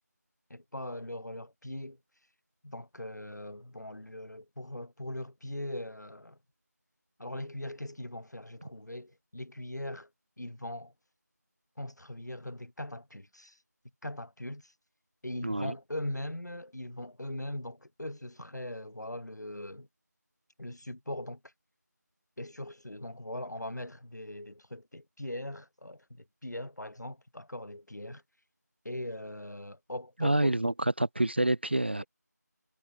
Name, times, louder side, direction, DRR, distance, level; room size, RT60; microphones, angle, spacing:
voice 1, 0.5-2.0 2.6-6.4 7.2-10.1 10.4-10.9 11.8-13.6 14.0-14.7 15.2-19.9 20.6-21.4 22.4-28.2 28.8-30.6, left 1 dB, 70° left, 6.1 m, -40 dB
voice 2, 15.4-15.7 30.2-32.0, right 1 dB, 35° right, 0.5 m, -27 dB
figure-of-eight pair, 170°, 10 cm